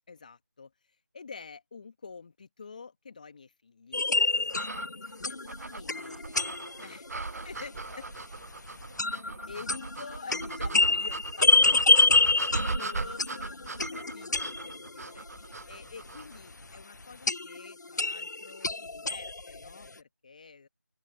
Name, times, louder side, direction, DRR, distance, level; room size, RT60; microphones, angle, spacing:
voice 1, 0.1-4.0 4.3-5.4 5.7-6.2 6.8-7.1 7.4-7.7 9.5-20.7, left 5 dB, 25° left, 1.7 m, -48 dB
sound 1, 3.9-7.2 7.5-7.6 7.8-7.9 8.1-8.2 8.8-15.0 15.4-15.5 17.3-19.7, left 3 dB, 75° left, 0.5 m, -27 dB
sound 2, 4.5-16.4, right 3 dB, 60° right, 0.4 m, -38 dB
voice 2, 5.3-9.5, right 1 dB, 90° right, 7.3 m, -60 dB
open air
figure-of-eight pair, 170°, 10 cm